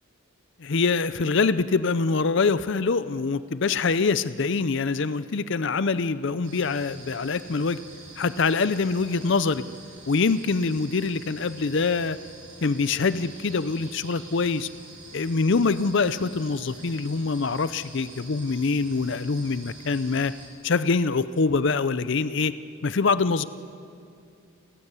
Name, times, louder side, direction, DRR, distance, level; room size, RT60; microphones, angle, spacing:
voice 1, 0.6-7.8 8.2-9.6 10.1-12.2 12.6-14.7 15.1-20.3 20.6-22.5 22.8-23.4, left 4 dB, 55° left, 14 dB, 0.5 m, -24 dB
sound 1, 6.4-20.5, right 2 dB, 70° right, 6.6 m, -46 dB
30.0 x 15.5 x 8.2 m, 2.4 s
head